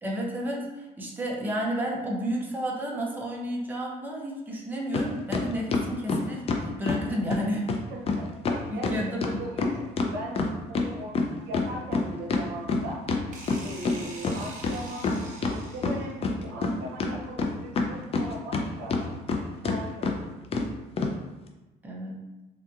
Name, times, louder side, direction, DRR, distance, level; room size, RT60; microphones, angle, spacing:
voice 1, 0.0-7.7 8.7-9.4 21.8-22.2, equal, 10° right, -2 dB, 0.6 m, -31 dB
sound 1, 4.9-5.1 5.3-7.0 7.3-7.4 7.7-7.8 8.1-8.2 8.4-10.9 11.1-13.9 14.2-14.3 14.6-15.5 15.8-16.7 17.0-18.6 18.9-19.4 19.6-19.8 20.0-20.1 20.5-20.7 21.0-21.1, left 4 dB, 35° left, 0.4 m, -26 dB
voice 2, 7.9-8.3 8.7-8.9 9.2-13.0 13.6-15.2 15.5-20.1, right 1 dB, 85° right, -1 dB, 0.8 m, -39 dB
sound 2, 13.3-16.2, right 2 dB, 50° right, 0.8 m, -44 dB
3.4 x 2.8 x 2.4 m, 1.1 s
cardioid pair, 110°, 17 cm